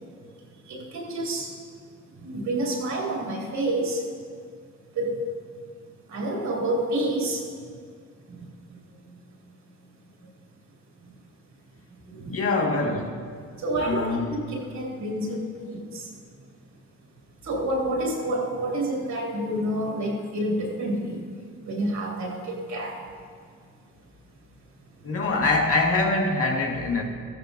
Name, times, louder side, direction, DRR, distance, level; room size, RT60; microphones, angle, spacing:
voice 1, 0.7-1.5 2.2-4.0 5.0-5.1 6.1-7.4 8.3-8.8 12.1-12.4 13.6-16.1 17.4-21.2 21.6-23.0, right 1 dB, 70° right, -3 dB, 2.6 m, -28 dB
voice 2, 12.3-13.3 13.8-14.4 25.0-27.0, left 3 dB, 50° left, 1 dB, 1.7 m, -24 dB
14.5 x 13.0 x 2.6 m, 2.1 s
cardioid pair, 90°, 30 cm